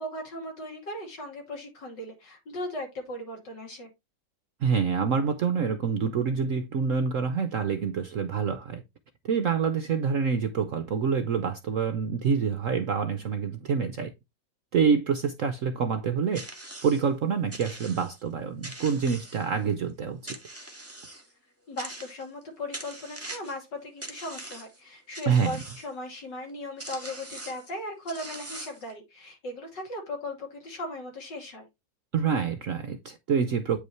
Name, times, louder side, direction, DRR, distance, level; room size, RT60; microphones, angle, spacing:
voice 1, 0.0-3.9 21.7-31.7, left 1 dB, 65° left, 3.2 m, -38 dB
voice 2, 4.6-8.8 9.2-14.1 14.7-16.5 16.8-20.4 25.3-25.6 32.1-33.8, right 6 dB, 65° right, 0.8 m, -26 dB
sound 1, 16.3-17.1 17.5-18.2 18.6-19.7 20.3-21.3 21.8-22.4 22.7-23.6 24.0-24.8 25.1-25.9 26.5-26.6 26.8-27.7 28.1-28.9, right 2 dB, 10° right, 1.5 m, -42 dB
8.8 x 5.3 x 3.1 m
omnidirectional pair, 2.0 m